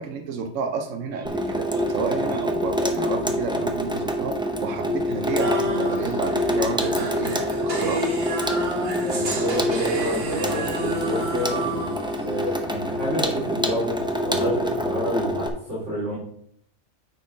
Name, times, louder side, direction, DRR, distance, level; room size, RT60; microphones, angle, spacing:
voice 1, 0.0-8.1, right 5 dB, 90° right, 6 dB, 1.1 m, -30 dB
Water tap faucet / Sink (filling or washing), 1.3-15.5, left 1 dB, 5° right, 0.6 m, -26 dB
sound 1, 5.4-12.6, right 1 dB, 55° right, 1.4 m, -30 dB
voice 2, 9.0-12.0 12.2-16.2, equal, 70° right, -10 dB, 3.3 m, -29 dB
9.2 x 4.2 x 5.1 m, 0.66 s
omnidirectional pair, 1.3 m